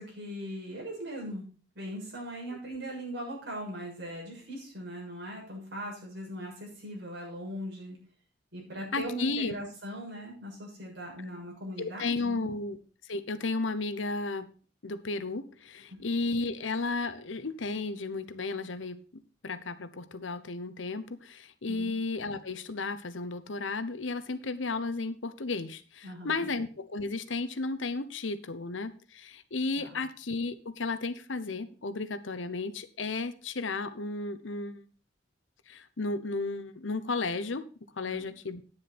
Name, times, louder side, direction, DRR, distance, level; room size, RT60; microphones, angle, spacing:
voice 1, 0.0-1.4 1.7-8.0 8.5-12.5 15.9-16.0 21.6-21.9 26.0-26.6 29.8-30.0 38.0-38.2, equal, 60° right, -2 dB, 6.7 m, -40 dB
voice 2, 8.9-9.6 11.8-14.5 14.8-19.0 19.4-34.8 35.7-37.6 38.0-38.6, left 3 dB, 80° left, 13 dB, 1.0 m, -33 dB
9.8 x 9.7 x 4.3 m, 0.38 s
head